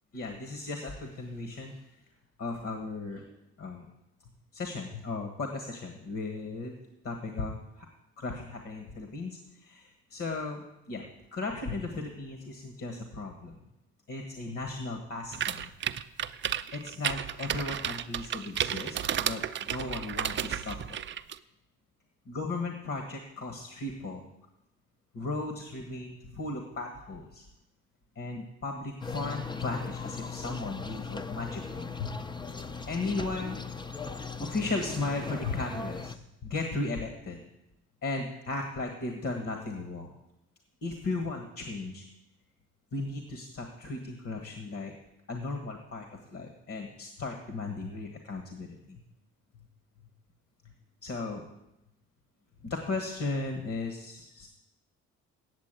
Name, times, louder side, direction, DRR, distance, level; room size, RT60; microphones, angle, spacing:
voice 1, 0.1-1.8 2.4-3.9 4.5-6.7 7.0-7.9 8.2-11.1 11.3-13.6 14.1-15.7 16.7-21.0 22.3-24.3 25.1-27.4 28.1-32.1 32.9-33.6 34.4-37.4 38.0-40.1 40.8-42.0 42.9-44.9 45.3-49.0 51.0-51.4 52.6-54.5, left 3 dB, 50° left, 4 dB, 1.5 m, -36 dB
sound 1, 15.3-21.4, right 9 dB, 40° right, 0.5 m, -32 dB
sound 2, 29.0-36.2, left 4 dB, 15° left, 0.5 m, -38 dB
8.4 x 7.5 x 8.9 m, 0.89 s
cardioid pair, 90°, 30 cm